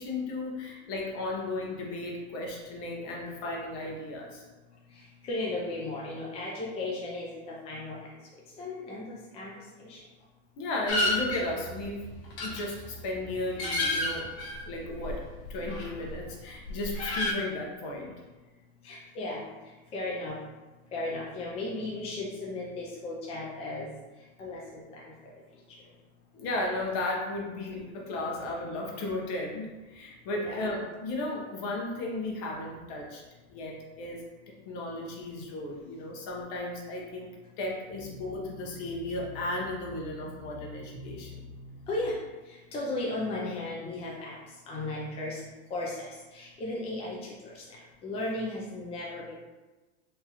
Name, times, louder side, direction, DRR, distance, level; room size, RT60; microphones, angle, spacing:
voice 1, 0.0-4.5 10.6-12.1 12.4-14.3 14.6-15.2 15.5-18.1 26.3-33.2 33.5-34.2 34.6-37.3 37.6-41.4, left 2 dB, 50° left, -2 dB, 1.0 m, -35 dB
voice 2, 4.9-8.1 8.6-9.5 9.8-10.0 18.8-19.5 19.9-20.4 20.9-23.9 24.4-25.1 30.3-30.7 41.9-42.2 42.5-44.4 44.7-45.4 45.7-47.6 48.0-49.3, left 2 dB, 20° left, -4 dB, 0.5 m, -35 dB
sound 1, 10.9-16.3 16.5-17.3, left 1 dB, 75° left, 1.0 m, -32 dB
sound 2, 37.9-42.1, left 1 dB, 35° right, 1.2 m, -46 dB
3.6 x 2.9 x 3.0 m, 1.2 s
supercardioid pair, 135°, 33 cm